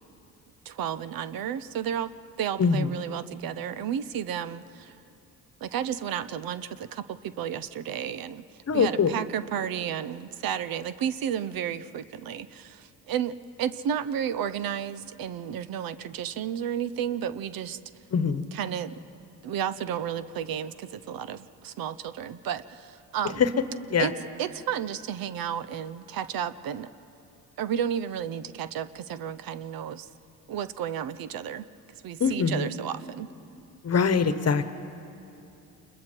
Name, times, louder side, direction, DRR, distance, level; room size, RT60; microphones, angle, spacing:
voice 1, 0.6-2.1 2.4-5.0 5.6-8.4 8.7-17.8 18.5-18.9 19.4-23.4 24.0-24.1 24.4-26.9 27.6-30.1 30.5-31.6 32.0-33.3, right 9 dB, 65° right, 14 dB, 0.8 m, -32 dB
voice 2, 8.7-9.1 18.1-18.5 23.4-23.5 23.9-24.1 32.2-32.7 33.8-34.7, left 6 dB, 40° left, 11 dB, 1.2 m, -23 dB
28.0 x 21.0 x 4.6 m, 2.8 s
supercardioid pair, 75°, 38 cm